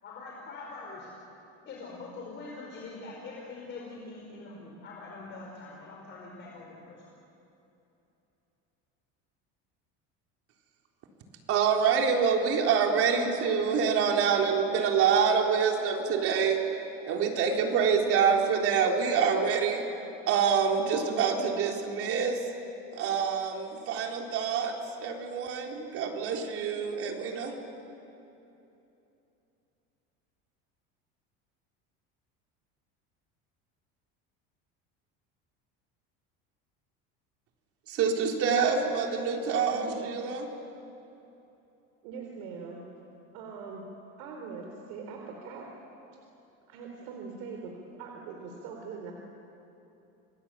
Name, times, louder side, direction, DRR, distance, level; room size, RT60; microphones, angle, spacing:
voice 1, 0.0-1.1 1.6-7.0, left 3 dB, 40° left, -2 dB, 5.1 m, -43 dB
voice 2, 11.5-16.6 17.1-19.9 20.3-22.4 23.0-24.7 25.0-27.5 37.9-40.5, right 6 dB, 50° right, 2 dB, 3.9 m, -26 dB
voice 3, 39.3-40.1 42.0-42.8 43.3-43.8 44.2-45.7 46.7-49.1, right 5 dB, 75° right, 1 dB, 3.9 m, -42 dB
29.0 x 21.0 x 8.9 m, 2.9 s
cardioid pair, 140°, 30 cm